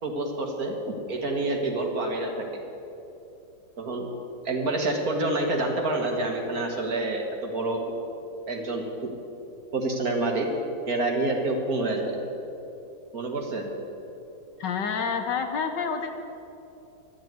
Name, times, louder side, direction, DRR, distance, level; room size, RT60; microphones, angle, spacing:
voice 1, 0.0-2.4 3.8-4.1 4.4-7.8 8.5-9.1 9.7-10.5 10.9-12.2 13.1-13.7, right 2 dB, 50° right, 2 dB, 1.7 m, -28 dB
voice 2, 14.6-16.1, left 6 dB, 65° left, 5 dB, 1.4 m, -28 dB
11.5 x 7.9 x 9.2 m, 2.9 s
omnidirectional pair, 2.2 m